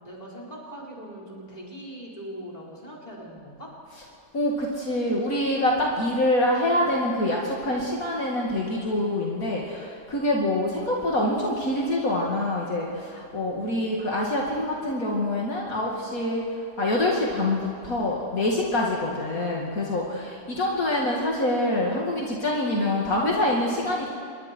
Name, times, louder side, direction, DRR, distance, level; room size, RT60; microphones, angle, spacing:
voice 1, 0.0-3.7, right 1 dB, 25° left, -4 dB, 4.8 m, -41 dB
voice 2, 4.3-24.1, left 1 dB, 65° left, -3 dB, 2.8 m, -25 dB
26.5 x 22.0 x 4.6 m, 2.5 s
omnidirectional pair, 1.6 m